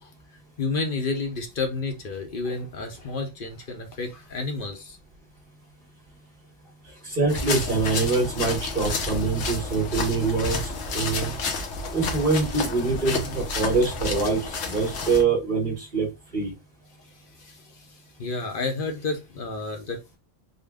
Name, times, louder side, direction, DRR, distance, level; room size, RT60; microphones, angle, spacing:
voice 1, 0.6-5.0 17.1-20.2, left 3 dB, 50° left, 0.8 m, -31 dB
voice 2, 7.0-11.4 11.9-16.1 16.3-16.5, right 4 dB, 45° right, 1.3 m, -24 dB
sound 1, 7.3-15.2, left 3 dB, 85° left, 1.2 m, -30 dB
3.7 x 2.1 x 3.4 m
omnidirectional pair, 1.3 m